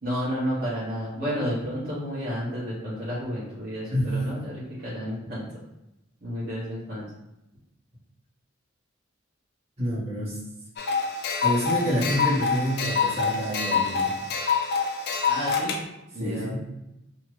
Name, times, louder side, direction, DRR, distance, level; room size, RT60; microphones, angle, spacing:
voice 1, 0.0-5.4 6.2-7.1 15.3-15.7 16.1-16.6, equal, 50° right, -10 dB, 0.9 m, -31 dB
voice 2, 3.9-4.5 9.8-10.4 11.4-14.2 16.2-16.6, equal, 30° right, -9 dB, 1.4 m, -28 dB
sound 1, 10.8-15.8, left 5 dB, 55° left, 0.4 m, -26 dB
2.8 x 2.5 x 3.1 m, 0.92 s
head